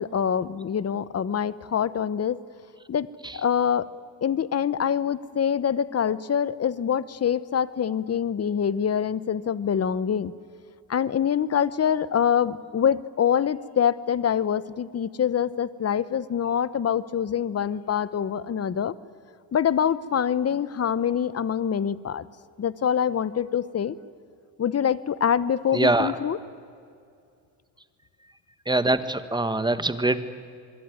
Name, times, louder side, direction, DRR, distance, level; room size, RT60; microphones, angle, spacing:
voice 1, 0.0-2.4 2.9-3.1 3.3-3.9 4.2-10.3 10.9-18.9 19.5-22.3 22.6-23.9 24.6-26.4, left 8 dB, 35° left, 17 dB, 1.0 m, -25 dB
voice 2, 25.7-26.1 28.6-30.2, right 2 dB, 10° right, 11 dB, 1.5 m, -23 dB
26.0 x 22.0 x 9.5 m, 2.3 s
cardioid pair, 95°, 43 cm